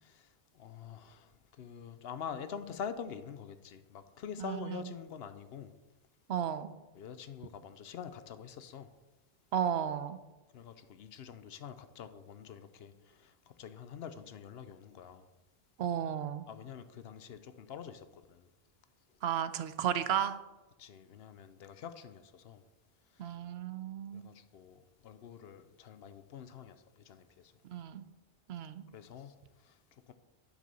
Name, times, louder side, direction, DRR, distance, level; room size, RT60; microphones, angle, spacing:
voice 1, 0.0-5.8 6.9-8.9 10.5-15.3 16.5-18.5 19.1-19.2 20.8-22.6 23.0-23.4 24.1-27.6 28.9-30.1, left 7 dB, 75° left, 0.9 m, -46 dB
voice 2, 6.3-6.7 9.5-10.2 15.8-16.5 19.2-20.4 23.2-24.3 27.7-28.0 28.5-28.8, right 9 dB, 85° right, 0.9 m, -33 dB
9.2 x 6.7 x 4.1 m
omnidirectional pair, 1.0 m